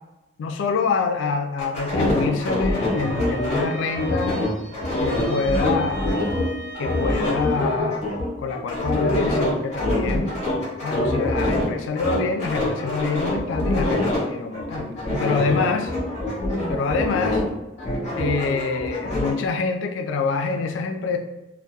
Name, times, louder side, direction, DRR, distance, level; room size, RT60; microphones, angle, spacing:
voice 1, 0.4-4.4 5.0-6.0 6.8-8.1 8.4-10.3 10.8-15.9 16.7-17.4 18.2-21.2, left 4 dB, 85° left, 6 dB, 0.3 m, -26 dB
sound 1, 1.6-6.4 6.7-11.7 11.9-14.2 14.5-17.5 17.8-19.3, left 1 dB, 40° left, 1.0 m, -24 dB
Bowed string instrument, 2.4-7.7, right 2 dB, 40° right, 0.8 m, -40 dB
2.7 x 2.2 x 2.2 m, 0.98 s
head